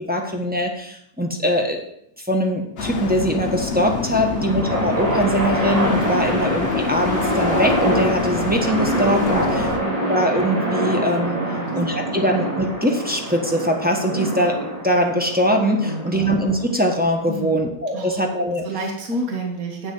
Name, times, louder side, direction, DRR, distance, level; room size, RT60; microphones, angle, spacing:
voice 1, 0.0-1.8 2.3-9.7 10.1-11.4 11.8-14.6 14.8-18.7, equal, 5° right, 2 dB, 1.2 m, -22 dB
sound 1, 2.8-9.8, left 5 dB, 45° left, 0.9 m, -27 dB
sound 2, 4.1-17.5, right 1 dB, 80° right, 4.7 m, -25 dB
voice 2, 9.5-10.0 11.5-11.8 12.1-12.3 15.8-16.3 17.3-17.7 17.9-18.2 18.6-19.9, right 1 dB, 50° right, 1 dB, 2.1 m, -30 dB
8.8 x 6.3 x 7.9 m, 0.76 s
omnidirectional pair, 1.9 m